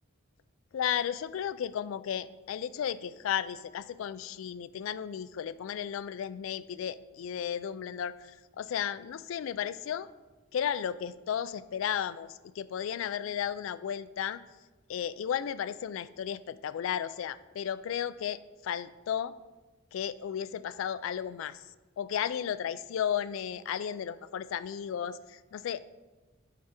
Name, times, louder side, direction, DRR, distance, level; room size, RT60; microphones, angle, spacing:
voice 1, 0.7-10.1 10.5-14.4 14.9-19.3 19.9-21.6 22.0-25.8, left 9 dB, 75° left, 17 dB, 0.3 m, -34 dB
8.4 x 3.4 x 4.3 m, 1.2 s
head